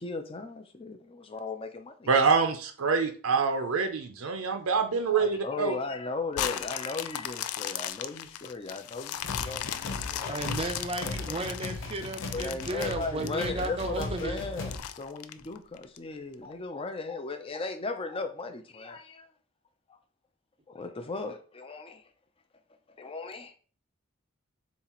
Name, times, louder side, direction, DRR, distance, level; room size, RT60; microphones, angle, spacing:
voice 1, 0.0-2.1 5.1-10.4 11.1-11.4 12.3-19.3 20.7-22.0 23.0-23.5, left 3 dB, 25° left, 7 dB, 0.5 m, -37 dB
voice 2, 2.1-5.7, right 5 dB, 70° right, 6 dB, 0.6 m, -26 dB
sound 1, 6.3-13.7 14.1-14.2 14.7-16.0 16.5-16.6, left 11 dB, 85° left, 0.3 m, -36 dB
sound 2, 9.2-14.8, left 2 dB, 60° left, 0.8 m, -38 dB
voice 3, 10.3-14.4, right 2 dB, 25° right, 7 dB, 0.5 m, -34 dB
6.9 x 2.4 x 2.9 m, 0.42 s
head